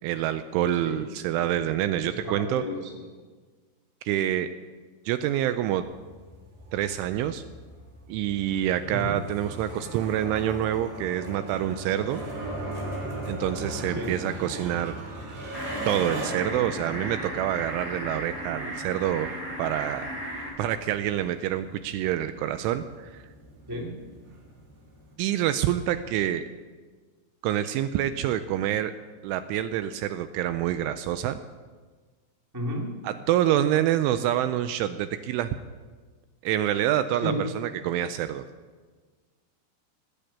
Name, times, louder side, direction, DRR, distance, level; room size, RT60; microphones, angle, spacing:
voice 1, 0.0-2.6 4.1-4.5 5.1-5.8 6.7-7.4 8.1-12.2 13.3-15.0 15.9-19.3 19.6-20.3 20.6-23.2 25.2-26.5 27.4-28.9 29.2-31.4 33.0-35.5 36.4-38.5, right 11 dB, 85° right, 10 dB, 2.8 m, -27 dB
voice 2, 2.0-3.0 8.9-9.2 13.9-14.1 23.7-24.0 32.5-32.9 37.2-37.4, equal, 35° right, -1 dB, 0.3 m, -32 dB
sound 1, 5.8-25.1, right 1 dB, 55° right, 5.1 m, -39 dB
sound 2, 15.5-20.5, right 1 dB, 10° right, 2.7 m, -36 dB
18.5 x 8.8 x 8.6 m, 1.4 s
omnidirectional pair, 6.0 m